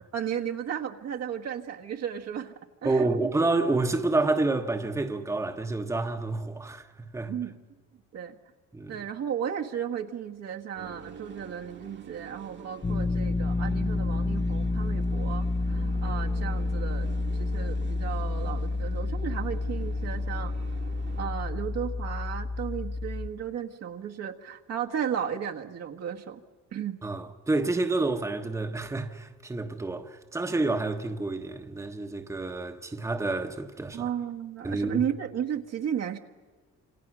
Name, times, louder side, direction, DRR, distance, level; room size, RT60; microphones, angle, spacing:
voice 1, 0.1-2.5 2.8-3.3 7.3-7.6 8.1-8.3 8.9-20.5 21.2-26.4 26.7-27.0 33.9-36.2, right 8 dB, 60° right, 1.6 m, -34 dB
voice 2, 2.8-6.9 7.1-7.3 8.7-9.0 27.0-34.1 34.6-35.0, right 2 dB, 10° right, 1.2 m, -28 dB
sound 1, 10.8-21.3, right 7 dB, 40° right, 1.5 m, -46 dB
sound 2, 12.8-23.3, left 3 dB, 20° left, 0.9 m, -29 dB
28.5 x 27.0 x 6.2 m
cardioid pair, 120°, 29 cm